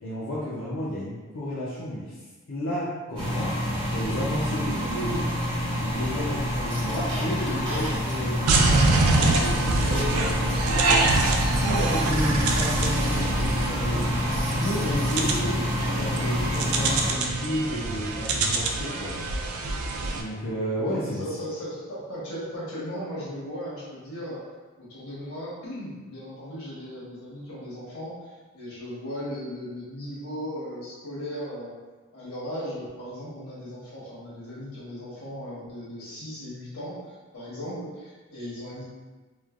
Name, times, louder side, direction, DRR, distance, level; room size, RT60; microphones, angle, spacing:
voice 1, 0.0-2.2 2.5-5.3 5.8-11.2 11.6-14.1 14.6-19.1 20.2-21.2, left 1 dB, 65° left, -9 dB, 0.5 m, -32 dB
sound 1, 3.2-17.1, equal, 20° right, 1.1 m, -27 dB
sound 2, 8.5-20.2, right 3 dB, 85° right, 0.3 m, -25 dB
voice 2, 20.7-24.4 24.8-31.8 32.1-38.8, equal, 90° left, -8 dB, 1.2 m, -37 dB
3.1 x 2.1 x 2.4 m, 1.3 s
head